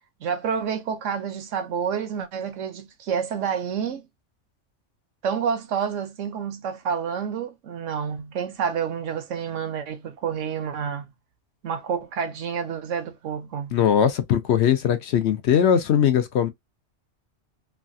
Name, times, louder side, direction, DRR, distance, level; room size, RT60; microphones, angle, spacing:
voice 1, 0.2-4.0 5.2-11.1 11.6-13.7, right 7 dB, 85° right, 1.1 m, -29 dB
voice 2, 13.7-16.5, left 8 dB, 70° left, 0.9 m, -20 dB
3.2 x 2.3 x 2.6 m
omnidirectional pair, 1.2 m